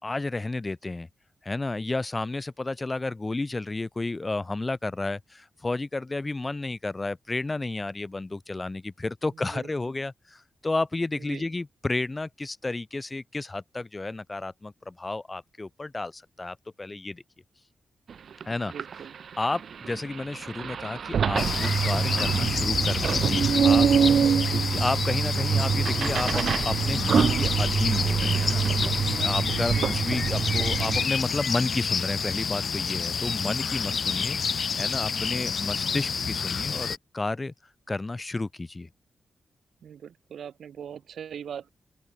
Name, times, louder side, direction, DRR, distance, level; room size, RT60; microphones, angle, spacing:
voice 1, 0.0-1.1 1.4-17.2 18.4-18.7 19.4-23.9 24.5-28.7 29.2-34.4 34.8-37.5 37.9-38.9, left 2 dB, 20° left, 4.0 m, -31 dB
voice 2, 9.3-9.7 11.2-11.5 18.6-19.2 24.2-24.7 29.5-30.0 39.8-41.7, right 8 dB, 75° right, 3.1 m, -41 dB
sound 1, 18.1-18.2 18.4-31.1, right 7 dB, 60° right, 1.0 m, -25 dB
sound 2, 21.4-37.0, left 6 dB, 50° left, 0.5 m, -29 dB
open air
wide cardioid pair, 160°, 0 cm